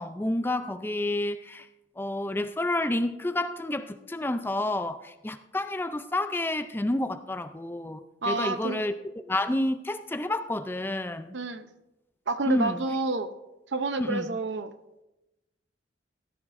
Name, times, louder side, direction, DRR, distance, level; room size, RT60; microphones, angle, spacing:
voice 1, 0.0-1.7 2.0-11.4 12.5-12.8 14.0-14.3, left 1 dB, 10° left, 10 dB, 0.4 m, -30 dB
voice 2, 8.2-8.8 11.3-11.7 12.3-13.3 13.7-14.7, right 3 dB, 75° right, 10 dB, 0.7 m, -29 dB
17.0 x 14.0 x 2.6 m, 0.99 s
head